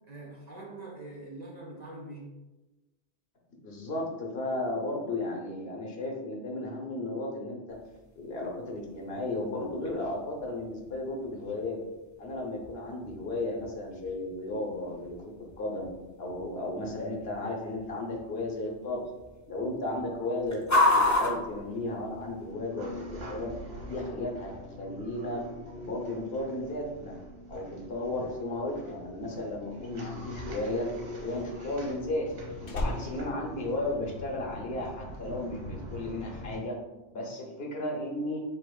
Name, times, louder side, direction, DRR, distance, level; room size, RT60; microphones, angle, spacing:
voice 1, 0.1-2.4, right 2 dB, 40° right, -3 dB, 0.9 m, -43 dB
voice 2, 3.6-7.8 8.2-11.8 12.2-15.3 15.6-15.9 16.2-19.0 19.5-23.5 23.9-25.4 25.8-27.2 27.5-30.9 31.2-36.8 37.1-38.4, left 2 dB, 60° left, -1 dB, 1.0 m, -34 dB
sound 1, 7.7-22.5, left 2 dB, 20° left, 0.7 m, -34 dB
sound 2, 20.4-36.6, left 1 dB, 80° right, 1.4 m, -43 dB
Slam, 29.7-34.5 34.7-35.2, left 1 dB, 90° left, 1.2 m, -38 dB
7.7 x 2.9 x 2.3 m, 1.1 s
omnidirectional pair, 1.2 m